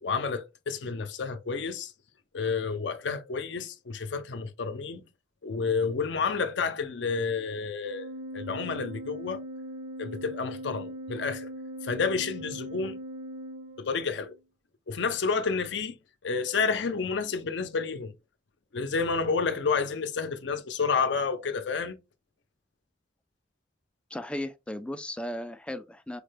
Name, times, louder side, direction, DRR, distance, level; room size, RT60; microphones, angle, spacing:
voice 1, 0.0-1.9 2.3-5.0 5.4-9.4 10.0-11.5 11.8-13.0 13.8-14.3 14.9-18.1 18.7-22.0, left 5 dB, 70° left, 0.6 m, -30 dB
Organ, 7.8-14.4, equal, 30° right, 0.7 m, -40 dB
voice 2, 24.1-26.2, left 1 dB, 5° left, 0.3 m, -36 dB
4.7 x 2.2 x 3.2 m
head